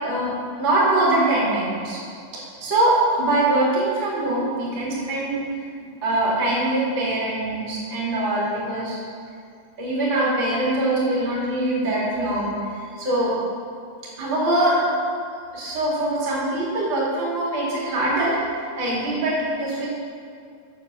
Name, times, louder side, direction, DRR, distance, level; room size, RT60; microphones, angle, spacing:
voice 1, 0.0-2.0 2.6-5.4 6.0-9.0 9.8-13.3 14.2-14.8 15.5-18.4 18.8-19.9, right 1 dB, 35° right, -6 dB, 2.3 m, -23 dB
7.2 x 6.7 x 6.7 m, 2.3 s
omnidirectional pair, 4.9 m